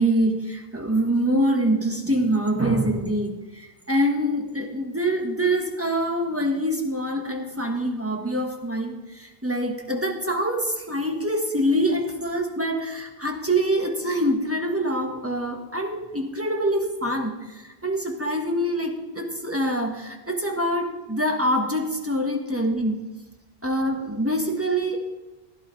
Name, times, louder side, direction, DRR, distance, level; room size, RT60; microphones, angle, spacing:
voice 1, 0.0-22.9 23.6-25.0, right 1 dB, 15° right, 2 dB, 1.2 m, -25 dB
15.5 x 12.0 x 3.2 m, 1.1 s
omnidirectional pair, 1.0 m